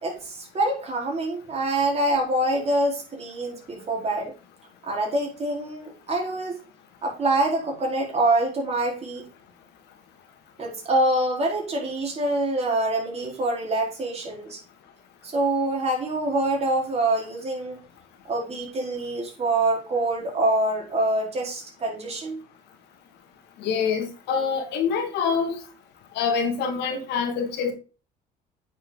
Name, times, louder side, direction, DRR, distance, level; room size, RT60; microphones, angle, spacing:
voice 1, 0.0-4.3 4.8-6.6 7.0-9.3 10.6-14.6 15.2-17.8 18.2-22.4, right 2 dB, 40° right, 4.7 m, -25 dB
voice 2, 23.6-25.6 26.1-27.7, left 6 dB, 85° left, 2.5 m, -25 dB
9.1 x 6.6 x 4.1 m
cardioid pair, 110°, 17 cm